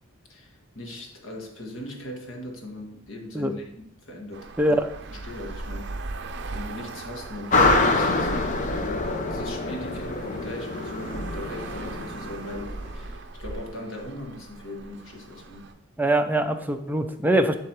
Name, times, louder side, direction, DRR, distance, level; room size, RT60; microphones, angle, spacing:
voice 1, 0.3-4.8 5.1-6.1 6.5-15.7, left 1 dB, 65° left, 1 dB, 1.6 m, -39 dB
Traffic noise roadway noise, 4.3-15.7, right 2 dB, 55° right, 0.6 m, -38 dB
sound 1, 7.5-12.9, left 3 dB, 35° left, 0.7 m, -25 dB
voice 2, 16.0-17.5, right 1 dB, 10° right, 5 dB, 0.4 m, -22 dB
10.5 x 3.8 x 4.6 m, 0.80 s
head